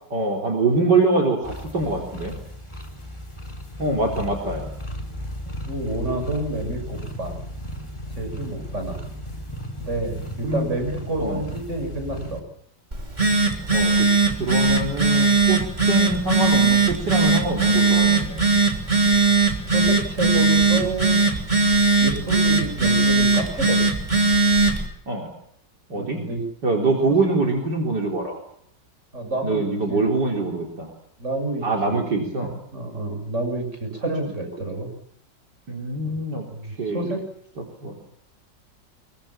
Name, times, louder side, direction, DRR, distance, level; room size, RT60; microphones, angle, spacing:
voice 1, 0.1-2.4 3.8-4.7 10.4-10.7 11.2-11.4 13.7-14.1 14.4-18.4 25.1-25.3 25.9-26.2 26.6-28.4 29.4-30.9 31.6-32.5 34.2-34.3 35.7-36.4 36.8-37.1 37.8-38.0, right 2 dB, 70° right, 0 dB, 4.4 m, -24 dB
sound 1, 1.4-12.4, equal, 15° left, 4.0 m, -35 dB
voice 2, 5.7-7.4 8.1-9.0 9.8-12.4 19.7-21.2 22.0-23.8 25.9-26.5 27.1-27.2 29.1-30.1 31.2-34.9 36.0-36.1 36.5-37.2, right 2 dB, 40° right, 5 dB, 7.4 m, -29 dB
Telephone, 12.9-24.9, right 3 dB, 25° right, 3.4 m, -19 dB
25.5 x 22.5 x 7.4 m, 0.69 s
omnidirectional pair, 1.9 m